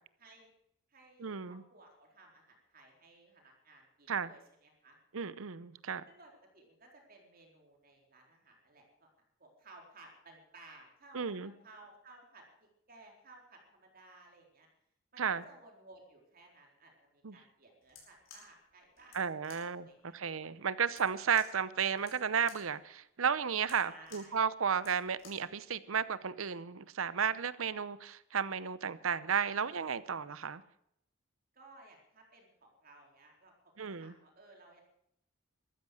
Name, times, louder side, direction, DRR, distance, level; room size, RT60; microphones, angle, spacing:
voice 1, 0.2-0.5 0.9-5.0 6.1-9.1 9.4-14.7 15.1-20.2 23.8-24.4 31.5-33.5 33.9-34.8, right 2 dB, 45° right, 1 dB, 4.1 m, -58 dB
voice 2, 1.2-1.6 4.1-4.3 5.1-6.0 11.1-11.5 15.2-15.4 17.2-17.4 19.1-19.9 20.1-30.6 33.8-34.1, right 7 dB, 75° right, 16 dB, 0.7 m, -33 dB
sound 1, 17.8-25.5, left 4 dB, 70° left, 5.5 m, -58 dB
14.0 x 13.0 x 6.5 m, 0.73 s
head